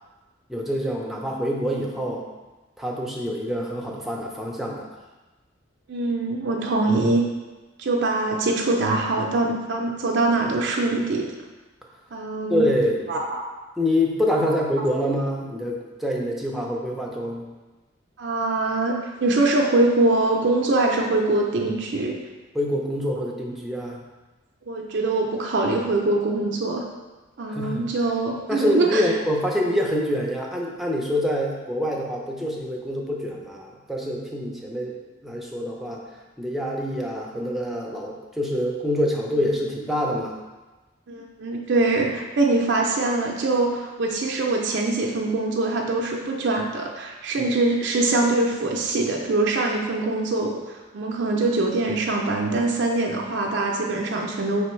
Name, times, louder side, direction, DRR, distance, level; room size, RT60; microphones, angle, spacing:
voice 1, 0.5-2.2 2.8-4.9 12.5-13.2 13.8-17.4 22.5-24.0 27.5-27.9 28.5-35.0 35.2-36.0 36.4-40.4 47.4-47.5, equal, ahead, -2 dB, 0.5 m, -26 dB
voice 2, 5.9-7.2 7.8-11.3 12.1-12.7 13.1-13.4 14.4-14.5 18.2-22.2 24.7-26.9 27.4-29.1 41.1-54.6, right 2 dB, 60° right, 0 dB, 0.5 m, -23 dB
5.1 x 3.4 x 3.1 m, 1.2 s
head